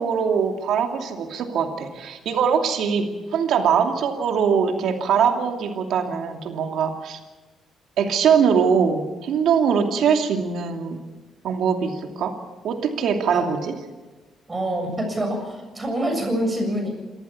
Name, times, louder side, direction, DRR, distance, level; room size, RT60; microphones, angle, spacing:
voice 1, 0.0-7.2 8.0-11.0 11.4-12.4 12.6-13.7, right 6 dB, 75° right, 4 dB, 2.6 m, -22 dB
voice 2, 14.5-16.9, right 1 dB, 25° right, 3 dB, 7.1 m, -26 dB
28.0 x 14.0 x 7.1 m, 1.3 s
cardioid pair, 90°, 0 cm